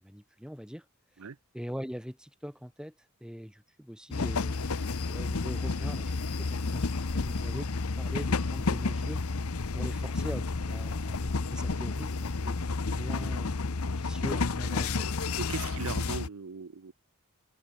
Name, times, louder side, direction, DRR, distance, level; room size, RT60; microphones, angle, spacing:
voice 1, 0.0-0.9 1.5-2.9 3.2-7.7 8.0-9.2 9.7-12.6 12.9-15.2, equal, 5° right, 5.7 m, -42 dB
sound 1, 4.1-16.3, left 3 dB, 75° left, 0.9 m, -31 dB
voice 2, 15.4-16.9, right 5 dB, 70° right, 0.7 m, -38 dB
head